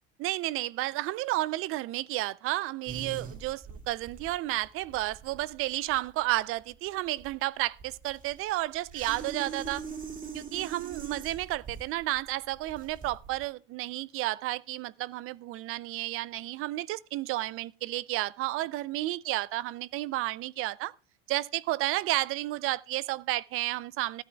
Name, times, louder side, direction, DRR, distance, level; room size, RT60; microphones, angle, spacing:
voice 1, 0.2-9.8 10.3-20.9 21.3-24.2, right 17 dB, 50° right, 0.5 m, -32 dB
sound 1, 2.9-13.5, right 6 dB, 30° right, 2.1 m, -43 dB
15.5 x 12.5 x 2.3 m
supercardioid pair, 110°, 29 cm